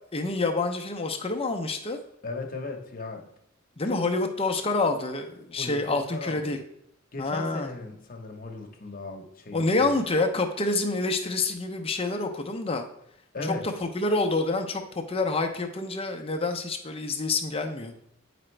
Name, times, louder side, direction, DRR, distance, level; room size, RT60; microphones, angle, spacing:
voice 1, 0.1-2.0 3.8-6.6 7.2-7.7 9.5-12.9 13.4-13.5 13.9-17.9, left 3 dB, 25° left, 4 dB, 0.6 m, -27 dB
voice 2, 2.2-3.3 3.8-4.0 5.5-6.5 7.1-10.0 13.3-13.7, left 2 dB, 45° left, 2 dB, 1.0 m, -36 dB
8.6 x 5.0 x 3.3 m, 0.76 s
head